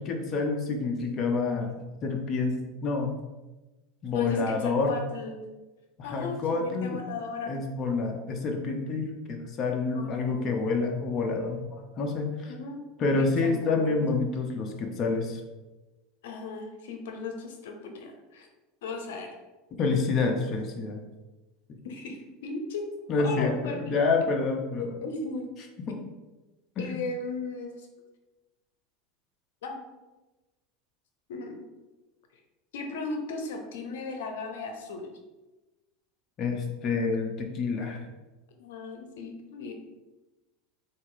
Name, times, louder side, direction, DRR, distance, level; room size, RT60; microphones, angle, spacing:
voice 1, 0.0-2.6 2.8-3.1 4.0-5.0 6.0-7.0 7.5-12.5 13.0-15.4 19.8-21.0 21.7-21.8 23.1-24.9 25.9-26.0 26.8-27.0 36.4-38.0, left 4 dB, 35° left, 2 dB, 0.7 m, -28 dB
voice 2, 4.1-5.4 6.0-7.5 9.9-10.6 12.5-12.8 13.2-14.0 16.2-18.5 18.8-19.3 21.8-22.8 23.2-24.0 24.8-25.5 26.8-27.9 29.6-29.8 31.3-31.6 32.7-35.1 38.6-39.7, left 3 dB, 90° left, 4 dB, 0.7 m, -37 dB
4.2 x 2.5 x 4.7 m, 1.1 s
supercardioid pair, 140°, 0 cm